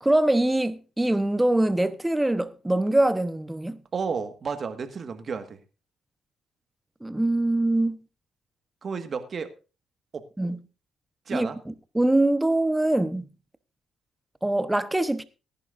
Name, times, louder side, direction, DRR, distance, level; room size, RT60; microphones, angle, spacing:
voice 1, 0.0-3.8 7.0-8.0 10.4-10.6 11.3-11.5 11.9-13.3 14.4-15.2, right 1 dB, 10° right, 1.0 m, -23 dB
voice 2, 3.9-5.6 8.8-9.5 10.1-10.2 11.3-11.6, right 5 dB, 45° right, 1.7 m, -32 dB
19.0 x 10.5 x 2.6 m
cardioid pair, 90°, 0 cm